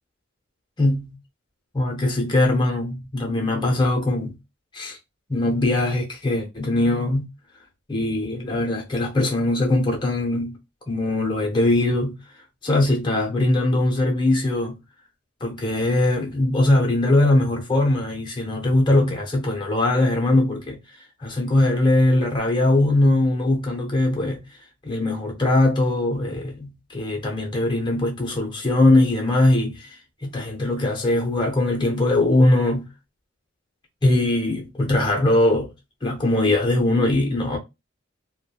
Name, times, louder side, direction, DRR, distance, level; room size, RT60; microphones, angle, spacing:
voice 1, 0.8-1.2 1.7-4.3 4.7-5.0 5.3-7.3 7.9-10.5 10.9-12.2 12.6-14.8 15.4-20.8 21.2-24.4 24.8-30.0 30.2-32.9 34.0-35.7 36.0-37.6, left 1 dB, 25° left, 0.6 m, -21 dB
3.0 x 2.1 x 2.3 m
head